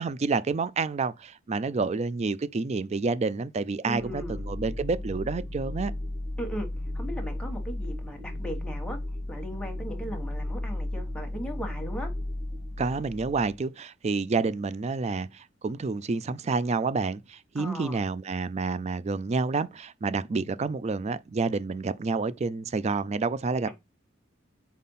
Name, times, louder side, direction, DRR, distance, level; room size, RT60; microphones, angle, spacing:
voice 1, 0.0-5.9 12.8-23.7, right 4 dB, 35° right, 0.4 m, -29 dB
voice 2, 3.8-4.4 6.4-6.7 6.9-9.0 9.3-12.1 17.5-18.0 23.7-23.8, equal, 5° left, 1.3 m, -37 dB
sound 1, 3.9-13.5, left 1 dB, 10° right, 1.2 m, -34 dB
4.2 x 4.2 x 5.4 m
head